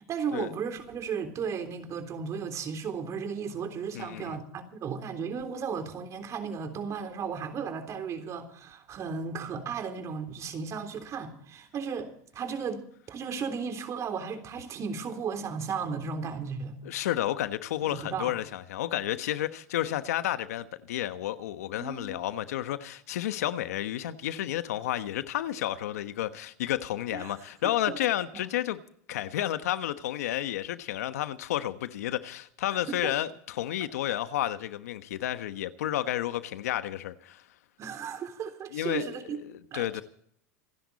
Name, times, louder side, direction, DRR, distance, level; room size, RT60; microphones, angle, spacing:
voice 1, 0.0-12.8 13.1-16.8 17.8-18.3 21.8-22.2 27.1-27.3 27.9-28.0 28.3-28.4 29.3-29.4 32.9-33.1 34.1-34.2 37.8-39.4 39.7-40.0, right 6 dB, 40° right, 3.5 m, -35 dB
voice 2, 3.9-4.4 16.8-28.8 29.1-37.4 38.7-39.1 39.5-40.0, left 13 dB, 85° left, 1.2 m, -31 dB
27.0 x 10.5 x 4.2 m
supercardioid pair, 110°, 8 cm